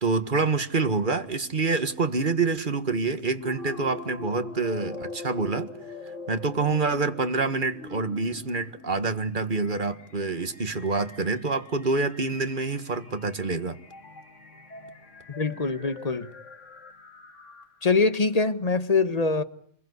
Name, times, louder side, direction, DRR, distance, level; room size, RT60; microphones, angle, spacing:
voice 1, 0.0-5.7 6.3-13.8, right 3 dB, 40° right, 1.8 m, -27 dB
sound 1, 3.4-18.0, left 3 dB, 80° left, 2.6 m, -43 dB
voice 2, 15.4-16.3 17.8-19.4, left 4 dB, 30° left, 1.4 m, -23 dB
27.5 x 21.5 x 8.2 m
omnidirectional pair, 1.3 m